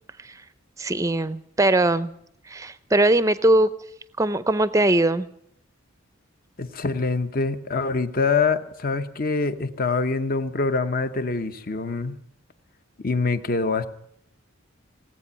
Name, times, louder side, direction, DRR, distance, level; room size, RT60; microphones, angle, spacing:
voice 1, 0.8-2.1 2.5-3.7 4.2-5.3, right 1 dB, 15° right, 15 dB, 0.5 m, -20 dB
voice 2, 6.6-12.2 13.0-13.9, left 4 dB, 40° left, 11 dB, 0.9 m, -25 dB
18.0 x 8.4 x 9.7 m, 0.73 s
head